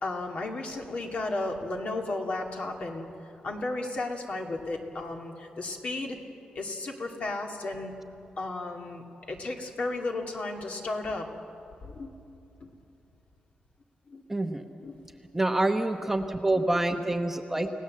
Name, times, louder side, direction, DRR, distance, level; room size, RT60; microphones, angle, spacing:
voice 1, 0.0-3.0 3.4-6.2 6.5-7.9 8.4-11.3 11.8-12.1 12.6-12.7 14.1-14.2 14.8-15.0, left 2 dB, 50° left, 2 dB, 2.5 m, -34 dB
voice 2, 14.3-14.6 15.3-17.7, right 2 dB, 10° right, 5 dB, 1.0 m, -26 dB
30.0 x 17.5 x 7.7 m, 2.9 s
wide cardioid pair, 145°, 3 cm